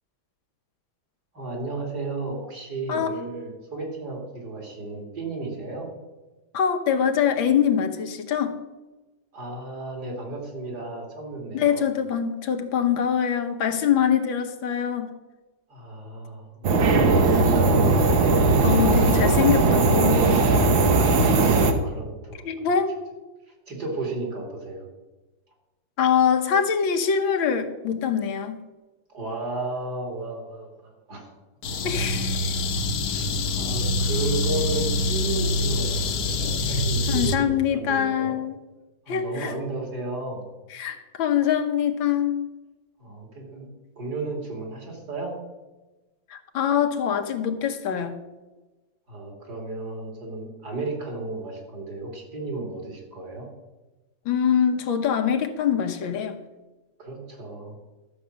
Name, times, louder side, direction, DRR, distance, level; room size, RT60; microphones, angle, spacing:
voice 1, 1.3-5.9 9.3-11.9 15.7-17.6 20.9-22.4 23.7-24.8 29.1-31.3 33.1-33.3 33.5-38.4 39.1-40.5 43.0-43.7 44.0-45.3 49.1-53.4 57.0-57.8, right 2 dB, 55° right, 0 dB, 3.3 m, -33 dB
voice 2, 6.5-8.6 11.5-15.1 18.3-20.5 22.4-23.0 26.0-28.6 31.8-32.5 37.1-38.6 39.1-39.5 40.7-42.5 46.3-48.1 54.3-56.4, left 8 dB, 85° left, 5 dB, 1.8 m, -24 dB
sound 1, 16.6-21.7, right 3 dB, 85° right, 1.9 m, -19 dB
sound 2, 31.6-37.4, left 2 dB, 60° left, 1.2 m, -25 dB
12.5 x 7.2 x 6.4 m, 1.2 s
omnidirectional pair, 2.1 m